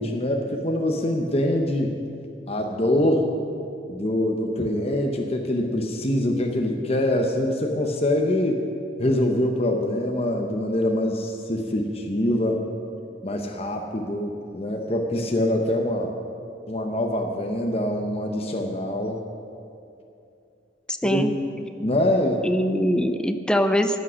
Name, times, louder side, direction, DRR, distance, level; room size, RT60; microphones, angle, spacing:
voice 1, 0.0-2.0 2.5-3.3 3.9-8.6 9.0-12.6 13.2-16.1 16.7-19.2 21.0-21.2 21.8-22.5, left 1 dB, 35° left, 2 dB, 0.9 m, -24 dB
voice 2, 20.9-21.3 22.4-24.0, equal, 5° left, 7 dB, 0.5 m, -23 dB
14.5 x 8.6 x 6.3 m, 2.7 s
head